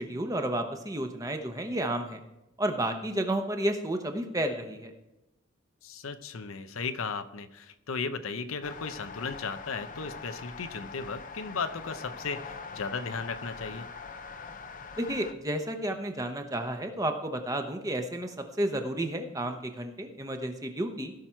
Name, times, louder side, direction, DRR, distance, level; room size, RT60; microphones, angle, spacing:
voice 1, 0.0-2.2 2.6-4.9 15.0-21.1, right 1 dB, 15° right, 5 dB, 0.9 m, -31 dB
voice 2, 5.8-13.9, left 4 dB, 85° left, 10 dB, 0.7 m, -36 dB
sound 1, 8.6-15.3, left 5 dB, 40° left, 0.5 m, -43 dB
16.5 x 6.0 x 4.5 m, 0.94 s
head